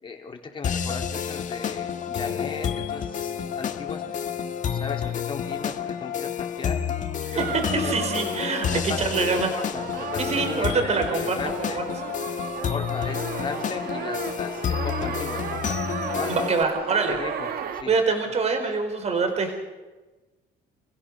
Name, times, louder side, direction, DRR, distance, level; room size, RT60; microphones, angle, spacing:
voice 1, 0.0-4.3 4.7-6.8 7.3-8.0 8.7-11.8 12.7-15.8 16.1-16.3 17.1-17.9, left 4 dB, 30° left, 2 dB, 3.9 m, -36 dB
sound 1, 0.6-16.6, left 8 dB, 50° left, 1.6 m, -30 dB
voice 2, 7.2-9.6 10.2-11.4 11.7-11.8 16.3-17.2 17.9-19.6, right 4 dB, 40° right, 5 dB, 4.5 m, -25 dB
sound 2, 7.4-17.8, right 8 dB, 65° right, 1.9 m, -34 dB
29.0 x 16.0 x 6.6 m, 1.2 s
cardioid pair, 110°, 17 cm